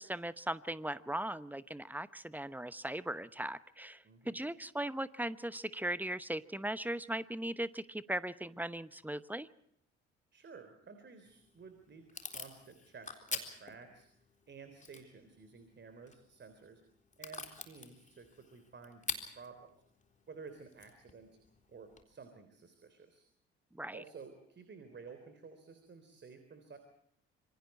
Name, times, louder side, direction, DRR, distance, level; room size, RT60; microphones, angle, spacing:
voice 1, 0.0-9.5 23.7-24.0, right 1 dB, 5° right, 16 dB, 1.0 m, -38 dB
voice 2, 4.0-4.4 10.3-16.8 17.2-19.7 20.3-21.4 21.7-23.2 23.9-26.8, right 5 dB, 35° right, 8 dB, 3.6 m, -53 dB
Packing tape duct tape / Tearing, 11.2-22.0, left 4 dB, 25° left, 3.8 m, -48 dB
27.0 x 25.0 x 4.4 m, 0.71 s
figure-of-eight pair, 50°, 32 cm